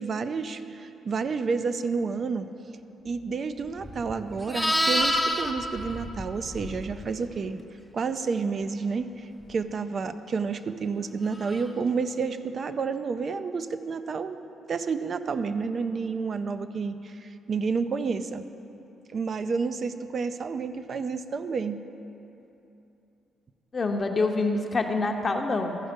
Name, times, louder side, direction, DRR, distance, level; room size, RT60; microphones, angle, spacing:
voice 1, 0.0-2.5 3.0-7.6 7.9-14.4 14.7-18.4 19.1-21.8, right 5 dB, 45° right, 11 dB, 0.5 m, -30 dB
Livestock farm animals working animals, 3.8-7.1 11.4-11.7, left 1 dB, ahead, 0.7 m, -28 dB
voice 2, 23.7-25.8, left 3 dB, 35° left, 3 dB, 0.7 m, -26 dB
14.0 x 5.3 x 5.2 m, 2.9 s
cardioid pair, 90°, 0 cm